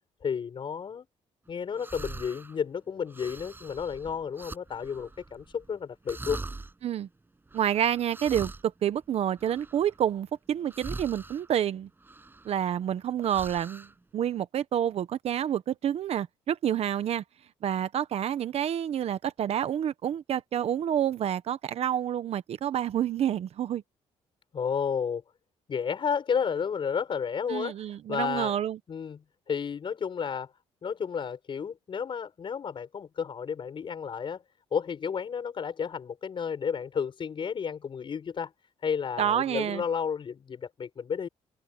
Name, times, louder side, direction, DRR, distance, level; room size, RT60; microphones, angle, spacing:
voice 1, 0.2-1.0 1.5-6.4 24.5-25.2 25.7-27.7 28.1-28.6 28.9-30.5 30.8-34.4 34.7-38.5 38.8-41.3, left 6 dB, 45° left, 6.8 m, -32 dB
sound 1, 1.7-2.6 3.1-5.7 6.1-6.7 7.5-10.1 10.6-11.5 12.0-12.9 13.2-14.0, right 3 dB, 15° right, 7.2 m, -42 dB
voice 2, 7.5-11.9 12.4-13.9 14.1-17.2 17.6-23.8 27.5-28.8 39.2-39.8, right 10 dB, 60° right, 1.1 m, -28 dB
open air
cardioid pair, 115°, 12 cm